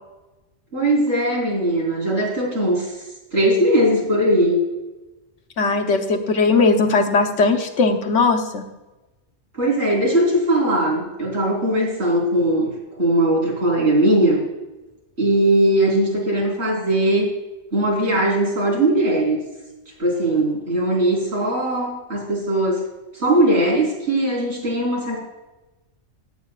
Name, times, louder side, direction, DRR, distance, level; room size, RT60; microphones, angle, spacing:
voice 1, 0.7-3.0 3.3-4.6 9.5-12.7 13.0-14.4 15.2-17.3 17.7-19.4 20.0-22.8 23.1-25.2, right 1 dB, 55° right, -3 dB, 4.3 m, -19 dB
voice 2, 5.6-8.7, left 4 dB, 70° left, 5 dB, 1.3 m, -18 dB
17.5 x 9.1 x 2.4 m, 1.1 s
omnidirectional pair, 1.3 m